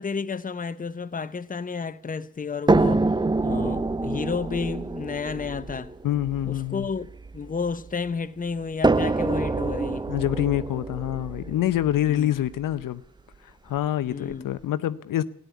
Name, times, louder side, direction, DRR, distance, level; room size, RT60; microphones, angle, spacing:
voice 1, 0.0-3.0 3.4-5.9 6.4-10.1 12.1-12.4 14.1-14.5, left 5 dB, 25° left, 0.9 m, -31 dB
sound 1, 2.7-7.9 8.8-12.8 13.8-13.9 14.3-14.4, right 3 dB, 15° right, 0.6 m, -26 dB
voice 2, 6.0-6.9 10.1-13.0 13.6-15.2, left 12 dB, 70° left, 0.8 m, -26 dB
14.0 x 10.0 x 8.3 m
supercardioid pair, 60°, 34 cm